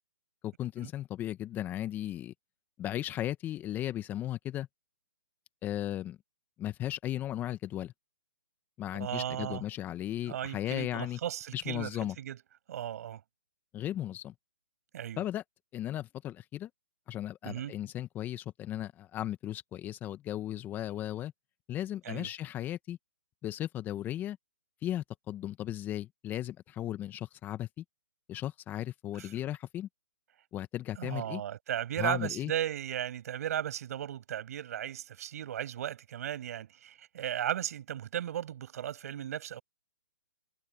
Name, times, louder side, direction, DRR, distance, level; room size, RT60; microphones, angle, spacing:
voice 1, 0.4-2.3 2.8-4.7 5.6-6.2 6.6-7.9 8.8-11.2 11.5-12.1 13.7-14.3 15.2-15.4 15.7-16.7 17.1-21.3 21.7-23.0 23.4-24.4 24.8-27.8 28.3-29.9 30.5-31.4 32.0-32.5, left 12 dB, 20° left, 1.1 m, -36 dB
voice 2, 8.9-9.6 10.3-11.9 12.2-12.4 12.7-13.2 14.9-15.2 17.4-17.7 22.1-22.3 31.0-39.6, right 11 dB, 55° right, 7.4 m, -36 dB
hypercardioid pair, 140°, 10 cm